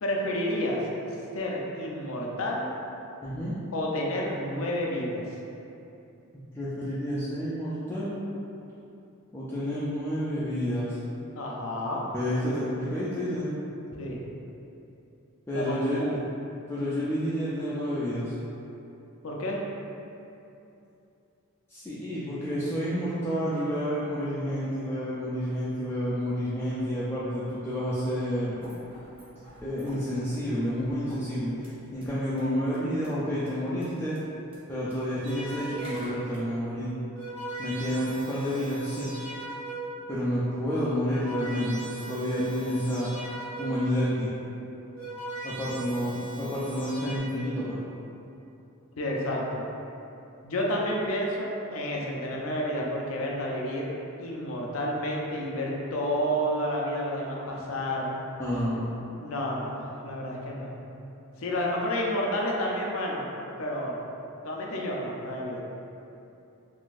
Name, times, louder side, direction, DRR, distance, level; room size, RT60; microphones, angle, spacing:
voice 1, 0.0-0.8 1.3-2.7 3.7-5.2 11.4-12.1 14.0-14.2 15.5-16.2 19.2-19.6 45.7-45.8 49.0-49.7 50.4-53.9 54.2-58.1 59.2-61.0 61.4-63.2 63.6-64.0 64.4-65.6, equal, 75° left, -2 dB, 0.5 m, -30 dB
voice 2, 3.2-3.5 6.5-8.2 9.3-11.0 12.1-13.5 15.5-16.1 16.7-18.3 21.7-28.6 29.6-34.2 34.7-36.9 37.6-39.1 40.1-43.1 43.6-44.3 45.4-47.8 58.4-58.9, equal, 10° left, -10 dB, 0.3 m, -29 dB
sound 1, 28.5-32.1 32.4-32.5 32.7-33.1 33.5-33.6 33.7-33.9 34.2-34.3 34.5-36.4, equal, 25° right, 0.8 m, -48 dB
sound 2, 35.2-36.1 36.9-40.0 40.8-43.9 44.7-47.2, right 2 dB, 55° right, 1.0 m, -39 dB
3.7 x 2.5 x 2.4 m, 2.8 s
head